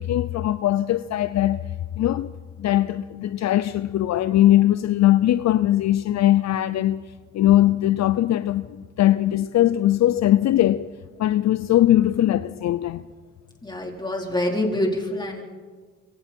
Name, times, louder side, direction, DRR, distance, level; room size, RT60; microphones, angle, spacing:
voice 1, 0.0-1.7 2.0-2.3 2.6-10.9 11.2-13.0, left 13 dB, 60° left, 0.6 m, -20 dB
voice 2, 13.6-15.4, left 1 dB, 15° left, 4.2 m, -26 dB
25.0 x 24.5 x 4.5 m
cardioid pair, 90°, 30 cm